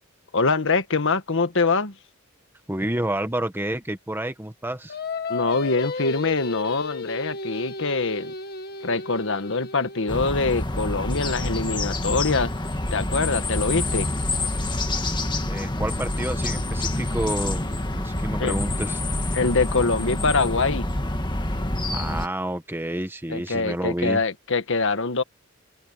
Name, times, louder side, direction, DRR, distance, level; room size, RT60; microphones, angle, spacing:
voice 1, 0.3-1.9 5.3-8.3 8.8-12.5 12.9-14.1 18.4-18.5 19.3-20.9 23.3-25.2, left 3 dB, 65° left, 1.4 m, -24 dB
voice 2, 2.7-5.0 15.5-17.6 17.9-19.0 21.9-24.2, right 1 dB, 10° right, 1.3 m, -29 dB
Singing, 4.9-10.3, left 4 dB, 50° left, 1.8 m, -34 dB
sound 1, 10.1-22.3, left 1 dB, 20° left, 1.9 m, -27 dB
head